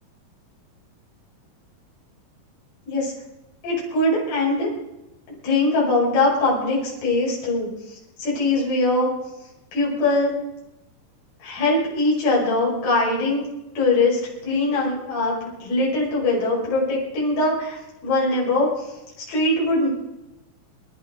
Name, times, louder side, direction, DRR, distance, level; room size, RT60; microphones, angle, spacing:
voice 1, 3.6-4.7 5.4-7.7 8.2-9.1 9.7-10.4 11.4-13.4 13.8-15.3 15.6-18.9 19.2-19.9, left 2 dB, 80° left, -5 dB, 7.6 m, -21 dB
27.5 x 13.0 x 3.9 m, 0.94 s
omnidirectional pair, 4.5 m